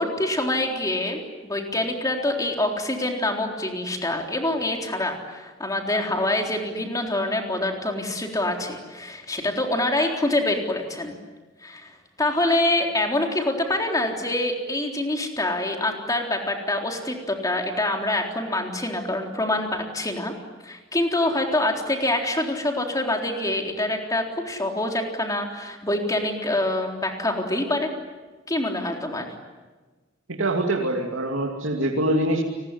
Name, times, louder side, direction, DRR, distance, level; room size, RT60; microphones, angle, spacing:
voice 1, 0.0-11.2 11.6-11.9 12.2-20.3 20.6-27.9 28.5-29.3, left 1 dB, 20° left, 2 dB, 3.8 m, -25 dB
voice 2, 30.3-32.4, right 1 dB, 80° right, 1 dB, 2.7 m, -24 dB
29.5 x 20.5 x 9.8 m, 1.3 s
head